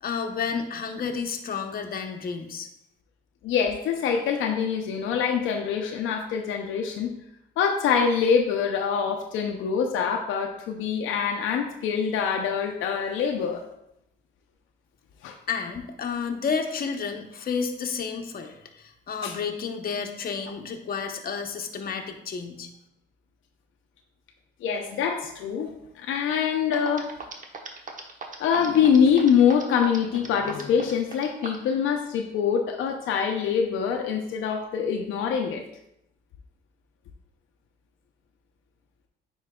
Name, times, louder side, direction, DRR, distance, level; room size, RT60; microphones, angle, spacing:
voice 1, 0.0-2.7 15.5-22.7, left 6 dB, 50° left, 4 dB, 0.9 m, -31 dB
voice 2, 3.4-7.1 7.6-13.6 15.2-15.4 19.2-19.3 24.6-25.7 26.0-27.1 28.4-35.6, left 7 dB, 85° left, 3 dB, 0.6 m, -24 dB
sound 1, 26.4-26.5 26.7-31.7, right 4 dB, 40° right, 1.0 m, -37 dB
9.5 x 4.5 x 2.3 m, 0.79 s
cardioid pair, 90°, 20 cm